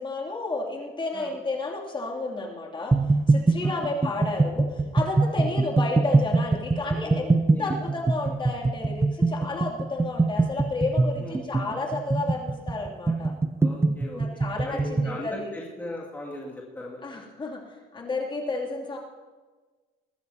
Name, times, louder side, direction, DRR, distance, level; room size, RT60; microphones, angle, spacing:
voice 1, 0.0-2.9 3.3-4.7 4.9-13.3 14.1-15.5 17.0-17.6 17.9-19.0, left 3 dB, 30° left, -1 dB, 2.8 m, -31 dB
sound 1, 2.9-15.2, right 3 dB, 15° right, 0.6 m, -23 dB
voice 2, 13.6-17.2, left 1 dB, 10° left, -4 dB, 2.4 m, -39 dB
20.0 x 13.5 x 2.9 m, 1.4 s
cardioid pair, 110°, 17 cm